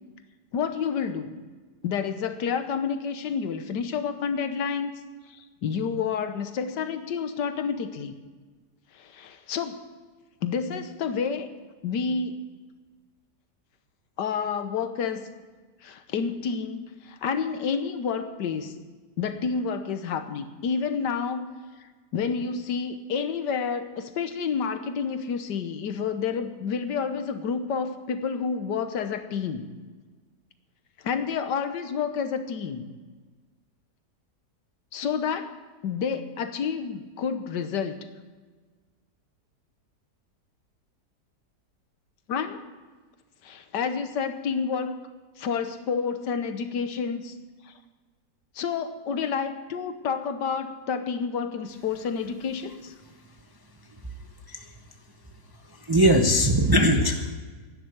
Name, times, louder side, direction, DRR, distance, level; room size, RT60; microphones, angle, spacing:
voice 1, 0.5-1.3 1.8-4.9 5.3-8.1 8.9-9.8 10.4-11.5 11.8-12.4 14.2-15.2 15.8-18.7 19.2-21.5 22.1-29.7 31.0-32.9 34.9-35.5 35.8-38.0 42.3-42.6 43.4-45.0 45.4-47.4 47.6-47.7 48.5-52.9 56.7-56.9, left 6 dB, 85° left, 9 dB, 1.6 m, -29 dB
voice 2, 55.9-57.3, equal, 20° right, 4 dB, 0.7 m, -19 dB
11.5 x 10.0 x 8.0 m, 1.4 s
omnidirectional pair, 1.8 m